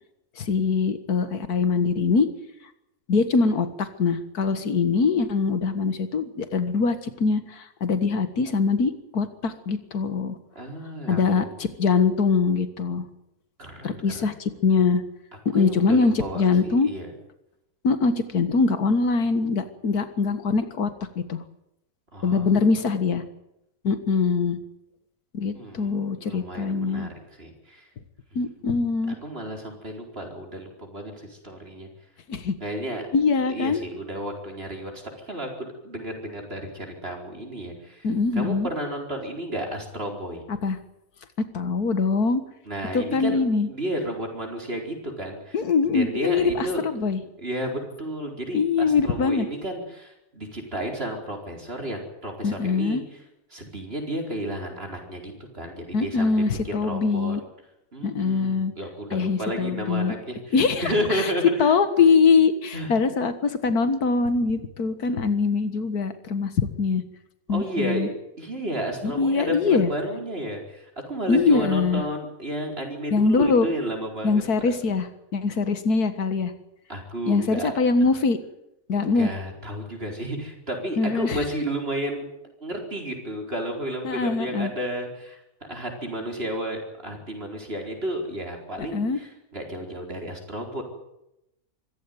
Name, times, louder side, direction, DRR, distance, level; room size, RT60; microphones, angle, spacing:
voice 1, 0.4-2.3 3.1-10.4 11.1-13.1 13.8-15.0 15.5-16.9 17.8-20.9 21.2-21.4 22.2-23.2 23.8-24.6 25.3-27.1 28.4-29.2 32.3-32.5 33.1-33.8 38.0-38.7 40.5-40.8 41.5-42.4 42.9-43.7 45.5-47.2 48.5-49.5 52.4-53.0 55.9-57.4 58.0-58.7 59.1-60.1 60.5-61.3 61.6-67.0 67.5-68.1 69.0-69.9 71.3-72.0 73.1-73.7 74.2-76.5 77.3-78.4 78.9-79.3 81.0-81.4 84.0-84.7 88.8-89.2, left 4 dB, 85° left, 11 dB, 2.1 m, -23 dB
voice 2, 10.5-11.5 13.6-14.3 15.5-17.1 22.1-22.7 25.5-27.9 29.1-31.9 32.6-33.0 33.5-38.1 38.3-40.4 42.7-45.6 45.8-46.9 47.4-53.2 53.5-57.4 57.9-61.5 62.7-62.9 67.5-68.1 68.4-74.7 76.9-77.7 79.0-82.3 82.6-85.4 85.7-90.8, right 1 dB, 40° right, 2 dB, 4.8 m, -32 dB
24.5 x 15.0 x 9.3 m, 0.86 s
omnidirectional pair, 1.6 m